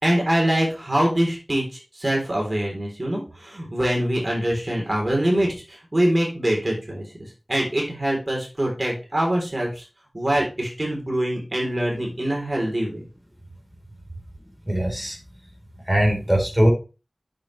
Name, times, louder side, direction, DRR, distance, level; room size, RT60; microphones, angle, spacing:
voice 1, 0.0-1.6 1.9-7.0 7.5-9.9 10.1-13.0, right 1 dB, 35° right, -1 dB, 3.7 m, -24 dB
voice 2, 14.7-15.2 15.9-16.7, equal, 5° right, -1 dB, 4.0 m, -20 dB
8.5 x 7.6 x 3.3 m, 0.31 s
wide cardioid pair, 65°, 0 cm